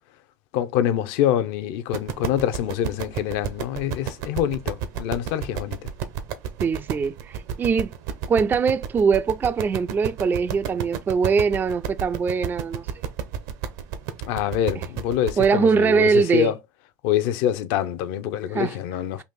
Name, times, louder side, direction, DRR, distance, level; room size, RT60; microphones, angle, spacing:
voice 1, 0.5-5.9 14.3-16.6 17.0-19.2, left 10 dB, 65° left, 0.6 m, -25 dB
sound 1, 1.9-15.5, right 8 dB, 70° right, 0.8 m, -31 dB
voice 2, 6.6-7.9 8.3-12.8 15.4-16.5 18.5-18.7, right 5 dB, 20° right, 0.3 m, -22 dB
4.0 x 2.5 x 3.6 m
hypercardioid pair, 95°, 10 cm